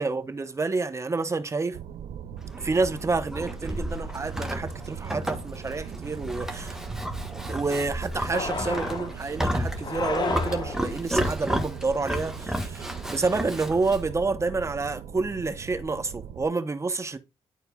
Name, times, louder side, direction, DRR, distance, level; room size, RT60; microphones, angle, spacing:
voice 1, 0.0-1.8 2.6-6.8 7.5-17.2, right 3 dB, 30° right, 0.9 m, -29 dB
sound 1, 1.7-16.5, right 8 dB, 85° right, 0.5 m, -40 dB
Livestock farm animals working animals, 2.4-14.0, equal, 5° right, 1.3 m, -32 dB
sound 2, 8.3-9.2 9.8-11.0, left 4 dB, 45° left, 1.0 m, -31 dB
11.0 x 4.2 x 2.3 m
cardioid pair, 100°, 10 cm